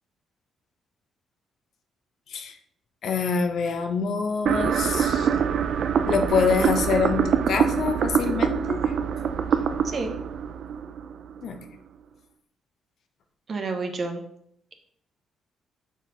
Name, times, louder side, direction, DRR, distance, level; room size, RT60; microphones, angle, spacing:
voice 1, 3.0-5.3 6.1-8.9 11.4-11.6, left 5 dB, 65° left, 6 dB, 0.8 m, -26 dB
sound 1, 4.5-11.5, right 7 dB, 65° right, 0.4 m, -24 dB
voice 2, 9.8-10.1 13.5-14.2, right 3 dB, 45° right, 4 dB, 1.2 m, -29 dB
6.1 x 4.3 x 4.1 m, 0.68 s
cardioid pair, 90°, 0 cm